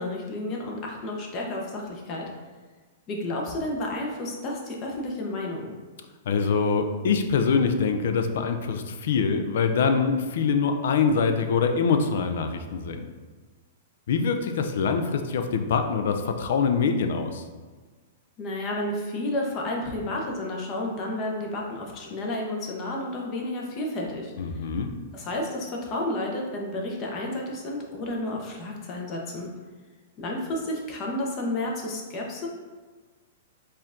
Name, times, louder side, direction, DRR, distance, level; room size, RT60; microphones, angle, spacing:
voice 1, 0.0-2.3 3.1-5.7 18.4-24.6 25.1-29.5 30.2-32.5, left 1 dB, 35° left, -1 dB, 0.8 m, -31 dB
voice 2, 6.3-13.1 14.1-17.4 24.4-24.9, left 5 dB, 70° left, 6 dB, 0.4 m, -24 dB
4.4 x 2.5 x 3.6 m, 1.4 s
hypercardioid pair, 140°, 0 cm